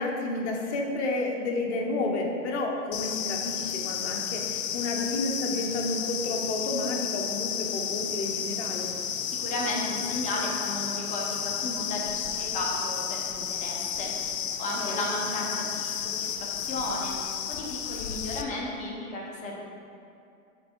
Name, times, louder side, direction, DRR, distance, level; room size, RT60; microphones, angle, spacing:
voice 1, 0.0-8.9 14.8-15.0, left 2 dB, 55° left, 1 dB, 1.0 m, -31 dB
sound 1, 2.9-18.4, left 8 dB, 75° left, 0.6 m, -32 dB
voice 2, 9.3-16.3 16.6-19.6, left 1 dB, 20° left, -2 dB, 0.8 m, -34 dB
6.1 x 3.5 x 4.4 m, 2.6 s
hypercardioid pair, 140°, 40 cm